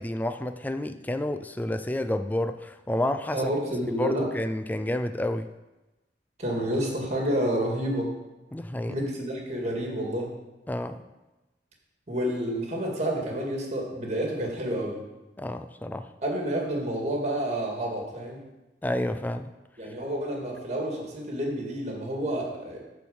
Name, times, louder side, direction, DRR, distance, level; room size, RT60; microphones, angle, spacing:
voice 1, 0.0-3.5 3.8-5.5 8.5-9.0 10.7-11.0 15.4-16.1 18.8-19.5, left 1 dB, 10° left, 9 dB, 0.3 m, -30 dB
voice 2, 3.3-4.3 6.4-8.1 8.9-10.3 12.1-15.0 16.2-18.4 19.8-22.8, right 1 dB, 40° right, -1 dB, 2.1 m, -29 dB
10.0 x 4.6 x 7.1 m, 1.1 s
head